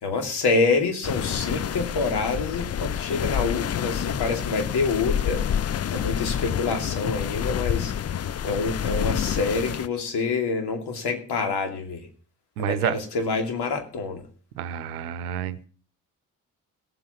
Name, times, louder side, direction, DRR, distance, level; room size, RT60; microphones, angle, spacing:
voice 1, 0.0-5.4 5.9-7.9 8.4-12.1 12.6-14.2, left 4 dB, 65° left, 5 dB, 2.8 m, -26 dB
sound 1, 1.0-9.9, left 9 dB, 35° left, 0.6 m, -28 dB
voice 2, 12.6-13.0 14.6-15.6, right 10 dB, 90° right, 14 dB, 0.8 m, -29 dB
17.0 x 7.8 x 5.7 m, 0.42 s
hypercardioid pair, 45°, 43 cm